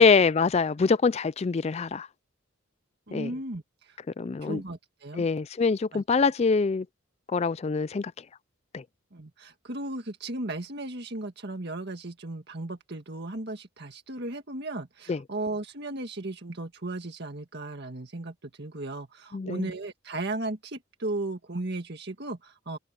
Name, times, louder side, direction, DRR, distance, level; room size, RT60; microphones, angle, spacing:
voice 1, 0.0-2.1 3.1-3.3 4.2-4.6 5.2-6.9 7.3-8.1 8.7-8.8 15.1-15.2 19.3-19.7, left 4 dB, 30° left, 0.3 m, -24 dB
voice 2, 3.1-4.0 4.4-5.3 5.9-6.0 9.1-22.8, right 2 dB, 50° right, 1.8 m, -36 dB
open air
head